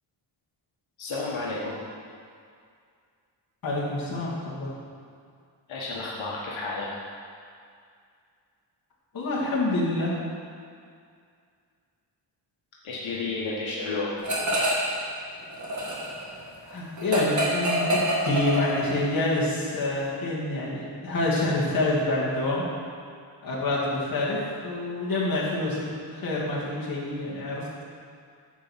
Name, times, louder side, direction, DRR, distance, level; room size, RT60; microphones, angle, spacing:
voice 1, 1.0-1.8 5.7-7.0 12.8-14.4, left 3 dB, 90° left, -5 dB, 1.5 m, -31 dB
voice 2, 3.6-4.7 9.1-10.2 16.7-22.6 23.4-27.7, left 2 dB, 50° left, -6 dB, 2.4 m, -27 dB
sound 1, 14.2-15.0 15.3-19.1, equal, 40° right, 1.8 m, -27 dB
9.9 x 4.6 x 7.4 m, 2.2 s
wide cardioid pair, 155°, 45 cm